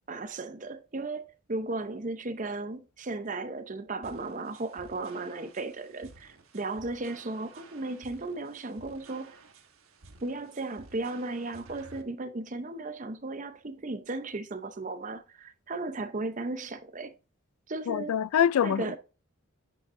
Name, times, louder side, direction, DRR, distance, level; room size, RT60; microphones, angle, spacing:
voice 1, 0.1-9.4 10.2-17.1 17.7-18.1 18.6-19.0, right 2 dB, 35° right, 0.7 m, -35 dB
sound 1, 4.0-12.0, right 3 dB, 80° right, 1.3 m, -54 dB
voice 2, 17.9-19.0, left 9 dB, 90° left, 0.3 m, -25 dB
10.5 x 5.4 x 2.6 m
head